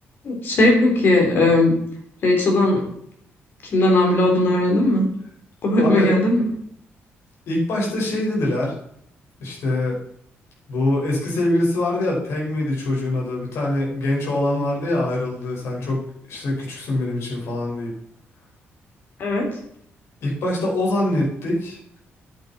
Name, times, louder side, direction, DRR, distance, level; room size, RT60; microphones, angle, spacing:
voice 1, 0.2-1.7 2.2-2.8 3.7-5.1 5.6-6.4 19.2-19.5, left 1 dB, 50° left, 1 dB, 3.6 m, -17 dB
voice 2, 5.8-6.2 7.5-8.7 9.4-10.0 10.7-17.9 20.2-21.8, left 1 dB, 70° left, -3 dB, 5.4 m, -24 dB
10.0 x 9.6 x 4.4 m, 0.71 s
cardioid pair, 160°, 5 cm